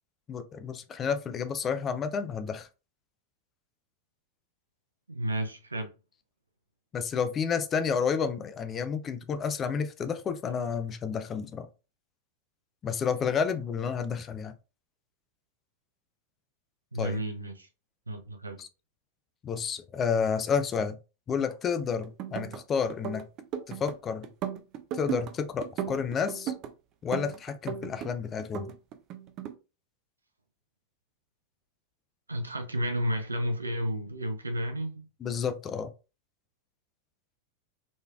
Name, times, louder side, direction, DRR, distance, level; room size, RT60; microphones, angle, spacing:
voice 1, 0.3-2.7 6.9-11.7 12.8-14.5 17.0-17.2 18.6-18.7 19.4-21.0 21.3-23.3 23.7-24.3 24.9-26.5 27.0-28.7 35.2-35.9, left 6 dB, 25° left, 0.5 m, -30 dB
voice 2, 5.1-5.9 16.9-17.7 18.1-18.6 32.3-35.1, equal, 80° right, 0.7 m, -32 dB
sound 1, 22.0-22.6 22.9-24.0 24.2-25.3 25.6-26.7 27.1-28.1 28.4-29.5, right 9 dB, 35° right, 0.5 m, -35 dB
4.2 x 3.2 x 2.3 m
figure-of-eight pair, 90°, 0 cm